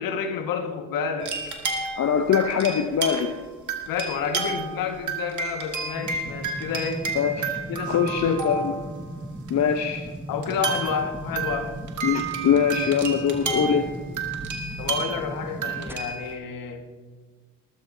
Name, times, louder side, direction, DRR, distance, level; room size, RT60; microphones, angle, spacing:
voice 1, 0.0-1.4 3.9-7.1 7.7-8.4 10.3-11.8 14.8-16.8, left 6 dB, 65° left, 5 dB, 1.9 m, -29 dB
sound 1, 1.2-3.4 3.7-4.8 5.1-8.9 9.5-9.6 10.4-16.3, right 4 dB, 50° right, 2.5 m, -31 dB
voice 2, 2.0-3.3 7.1-7.6 7.9-8.7 9.5-10.1 12.0-13.9, left 7 dB, 45° left, 8 dB, 1.0 m, -23 dB
sound 2, 5.9-15.9, right 1 dB, 5° right, 1.1 m, -37 dB
20.0 x 13.5 x 2.8 m, 1.5 s
hypercardioid pair, 50°, 37 cm